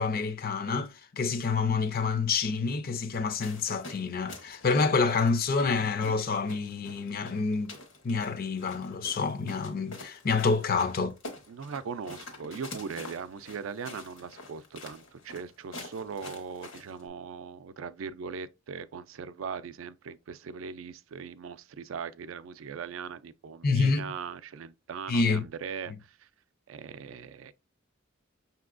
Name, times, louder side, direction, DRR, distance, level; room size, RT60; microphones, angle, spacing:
voice 1, 0.0-7.7 8.0-11.1 23.6-24.1 25.1-25.4, left 4 dB, 50° left, 0.5 m, -28 dB
sound 1, 3.4-17.0, left 2 dB, 75° left, 1.3 m, -47 dB
voice 2, 11.5-26.3 26.7-27.5, right 6 dB, 85° right, 0.4 m, -40 dB
5.9 x 2.8 x 2.5 m
head